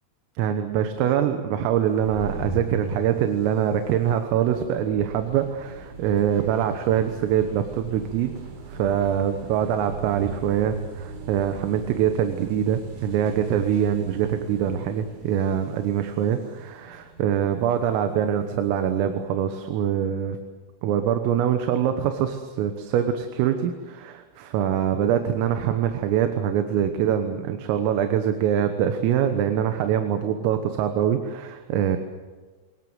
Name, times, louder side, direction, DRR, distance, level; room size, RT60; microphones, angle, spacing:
voice 1, 0.4-8.3 8.7-20.4 20.8-32.0, right 9 dB, 85° right, 7 dB, 3.9 m, -24 dB
sound 1, 1.8-19.2, right 3 dB, 70° right, 6.0 m, -39 dB
24.5 x 20.0 x 8.0 m, 1.3 s
omnidirectional pair, 5.8 m